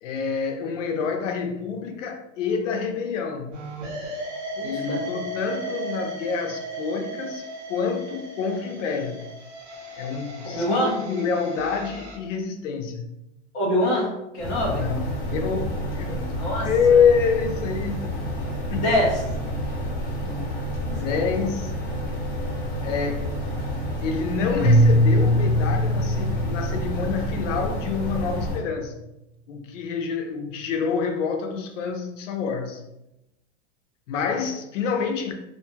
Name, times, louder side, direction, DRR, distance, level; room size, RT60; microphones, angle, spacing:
voice 1, 0.0-3.5 4.6-7.4 7.7-9.2 10.0-13.1 14.7-18.1 18.7-18.9 20.9-21.7 22.8-23.4 24.0-28.9 29.5-32.8 34.1-35.3, left 6 dB, 85° left, 0.6 m, -27 dB
sound 1, 3.5-12.2, right 1 dB, 75° right, 1.1 m, -36 dB
voice 2, 4.6-5.1 10.5-10.9 13.5-14.9 16.3-16.7 18.6-19.2 20.2-20.4 20.8-20.9, left 1 dB, 15° left, 0.4 m, -25 dB
sound 2, 14.4-28.6, equal, 35° left, 0.8 m, -29 dB
Keyboard (musical), 24.6-27.7, equal, 60° right, 1.3 m, -21 dB
2.6 x 2.2 x 2.7 m
supercardioid pair, 175°, 36 cm